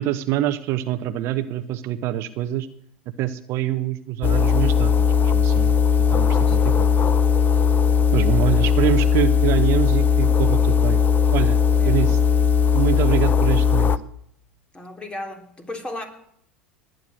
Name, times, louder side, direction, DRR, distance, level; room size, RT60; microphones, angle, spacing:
voice 1, 0.0-2.7 3.2-5.7 6.1-6.9 8.1-11.0 11.3-11.6 11.8-12.2 12.7-13.9, right 13 dB, 50° right, 11 dB, 1.1 m, -25 dB
sound 1, 4.2-14.0, left 6 dB, 35° left, 0.9 m, -18 dB
voice 2, 11.7-12.1 14.7-16.1, left 1 dB, 15° left, 5 dB, 3.6 m, -35 dB
20.0 x 9.5 x 6.6 m, 0.71 s
hypercardioid pair, 80°, 6 cm